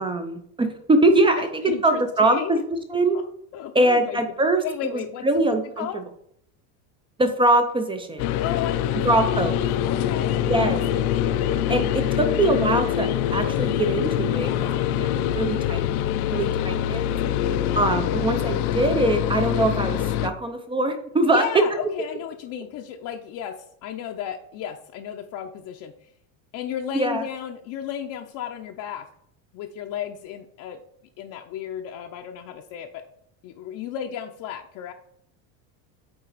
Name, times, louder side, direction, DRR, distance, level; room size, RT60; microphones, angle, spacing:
voice 1, 0.0-3.2 3.7-4.6 5.2-5.9 7.2-8.3 9.0-9.6 10.5-10.8 11.7-15.1 15.3-15.8 16.3-17.1 17.7-21.4 26.9-27.2, right 2 dB, 15° right, 7 dB, 0.3 m, -22 dB
voice 2, 1.3-2.6 3.1-3.2 3.5-4.2 4.6-6.0 8.4-9.5 9.8-10.4 11.7-12.0 12.2-12.5 14.4-14.9 17.3-18.3 21.2-26.1 26.5-29.1 29.5-30.8 31.2-33.0 33.4-34.9, left 9 dB, 50° left, 3 dB, 0.6 m, -34 dB
sound 1, 8.2-20.3, left 11 dB, 90° left, 0.6 m, -24 dB
8.6 x 3.9 x 4.0 m, 0.71 s
cardioid pair, 145°, 42 cm